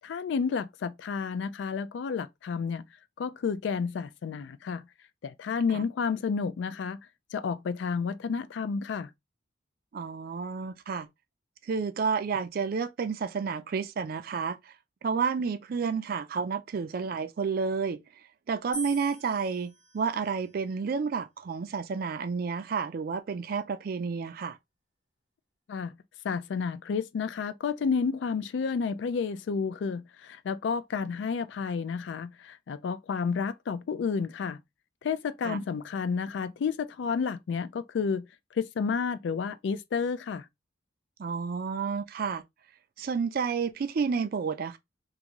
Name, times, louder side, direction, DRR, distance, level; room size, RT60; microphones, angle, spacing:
voice 1, 0.0-2.8 3.2-4.8 5.2-7.0 7.3-9.1 25.7-25.9 26.2-34.6 35.0-38.3 38.5-40.5, left 5 dB, 70° left, 0.3 m, -31 dB
voice 2, 9.9-11.1 11.6-14.7 15.0-18.0 18.5-24.6 35.4-35.6 41.2-42.4 43.0-44.8, right 5 dB, 50° right, 0.3 m, -30 dB
sound 1, 18.7-20.9 21.7-22.3, right 2 dB, 90° left, 1.2 m, -44 dB
2.6 x 2.4 x 2.9 m
head